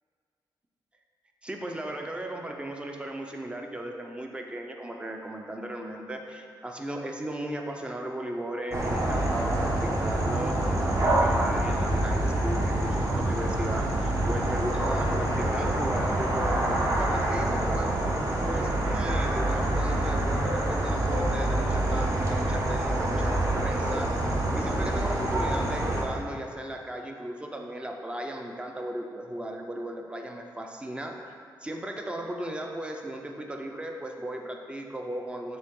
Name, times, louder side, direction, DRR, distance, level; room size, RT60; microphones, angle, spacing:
voice 1, 1.4-17.9 18.4-24.1 24.5-31.2 31.6-35.6, right 1 dB, 15° right, 2 dB, 0.6 m, -36 dB
sound 1, 8.7-26.0, right 1 dB, 40° right, 1.2 m, -26 dB
9.4 x 3.7 x 3.7 m, 2.2 s
wide cardioid pair, 140°, 8 cm